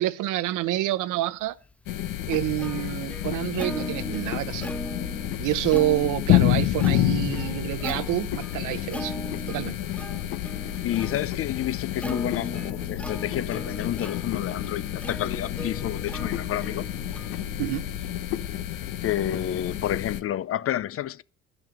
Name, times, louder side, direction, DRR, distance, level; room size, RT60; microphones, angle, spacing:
voice 1, 0.0-1.5 2.3-4.7 5.4-9.2 9.5-9.8 17.6-17.9, right 15 dB, 75° right, 0.9 m, -27 dB
Plucked string instrument, 1.7-18.4, equal, 5° left, 0.8 m, -40 dB
sound 1, 1.9-20.2, left 13 dB, 90° left, 1.1 m, -29 dB
voice 2, 10.6-16.9 19.0-21.2, left 12 dB, 45° left, 0.5 m, -30 dB
12.5 x 6.3 x 9.0 m
cardioid pair, 110°, 31 cm